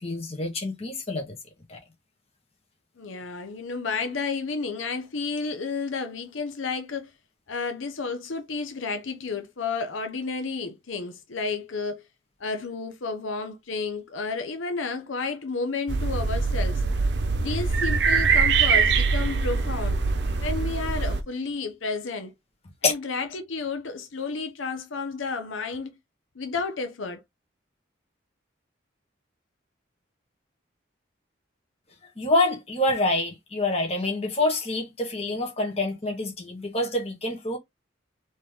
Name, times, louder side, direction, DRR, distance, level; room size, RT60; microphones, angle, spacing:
voice 1, 0.0-1.4 1.7-1.8 22.8-22.9 32.2-37.6, left 2 dB, 30° left, 1.5 m, -26 dB
voice 2, 3.0-7.1 7.5-12.0 12.4-16.8 17.4-20.0 20.4-22.3 22.8-26.0 26.3-27.2, left 4 dB, 90° left, 0.8 m, -31 dB
sound 1, 15.9-21.2, right 4 dB, 60° right, 0.7 m, -23 dB
4.3 x 3.0 x 3.6 m
head